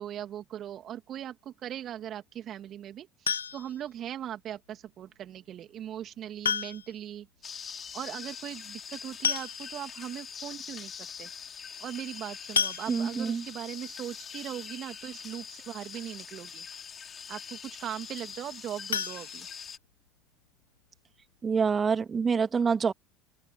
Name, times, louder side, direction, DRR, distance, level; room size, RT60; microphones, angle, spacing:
voice 1, 0.0-7.3 7.9-10.9 11.2-11.3 11.8-16.7 17.3-19.5, right 11 dB, 50° right, 2.9 m, -39 dB
sound 1, 3.3-3.9 5.4-5.5 6.4-7.1 7.4-7.5 7.7-7.8 8.8-8.9 9.2-10.0 10.5-10.6 10.9-11.1 12.6-13.4 18.9-20.1 20.5-20.6 21.0-21.1 21.4-21.5, left 7 dB, 90° left, 0.4 m, -32 dB
sound 2, 7.4-19.8, left 7 dB, 35° left, 4.7 m, -43 dB
voice 2, 12.9-13.4 21.4-22.9, right 5 dB, 30° right, 2.1 m, -26 dB
open air
hypercardioid pair, 70°, 0 cm